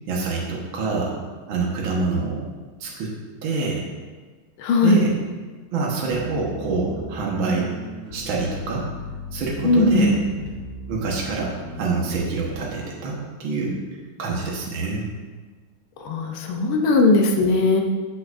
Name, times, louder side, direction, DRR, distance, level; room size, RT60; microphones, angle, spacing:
voice 1, 0.1-1.2 1.5-2.5 2.8-3.1 3.4-3.9 4.8-5.2 5.7-7.7 8.1-8.9 9.3-10.2 10.9-13.8 14.2-15.1, right 4 dB, 70° right, -3 dB, 2.0 m, -26 dB
voice 2, 4.6-5.0 9.6-10.2 16.0-17.8, left 2 dB, 85° left, 2 dB, 1.7 m, -18 dB
sound 1, 6.1-12.6, left 1 dB, 35° right, 1.8 m, -37 dB
13.0 x 6.6 x 2.6 m, 1.4 s
omnidirectional pair, 2.3 m